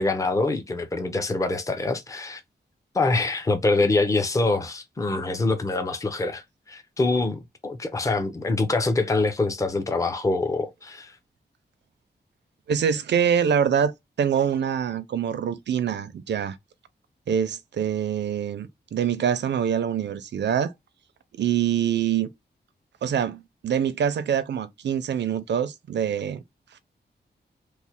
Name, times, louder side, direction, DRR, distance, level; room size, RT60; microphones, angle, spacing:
voice 1, 0.0-2.4 2.9-11.2, left 3 dB, 20° left, 0.5 m, -25 dB
voice 2, 12.7-13.9 14.2-16.6 17.3-20.7 21.3-22.3 23.0-26.4, right 8 dB, 75° right, 0.5 m, -25 dB
3.1 x 2.1 x 4.2 m
wide cardioid pair, 140°, 18 cm